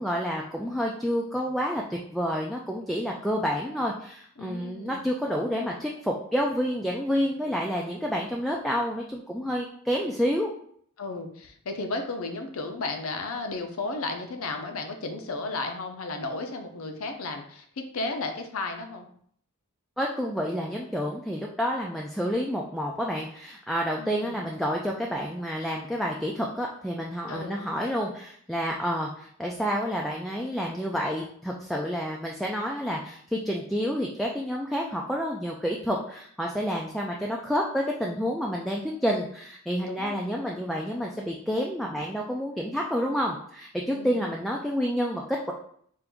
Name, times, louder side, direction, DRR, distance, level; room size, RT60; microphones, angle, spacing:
voice 1, 0.0-10.5 20.0-45.2, equal, ahead, -1 dB, 0.3 m, -29 dB
voice 2, 4.4-5.0 11.0-19.1 24.0-24.4 27.3-27.6 39.8-40.3 43.9-44.3, left 3 dB, 70° left, 5 dB, 0.6 m, -34 dB
4.5 x 2.5 x 3.6 m, 0.63 s
head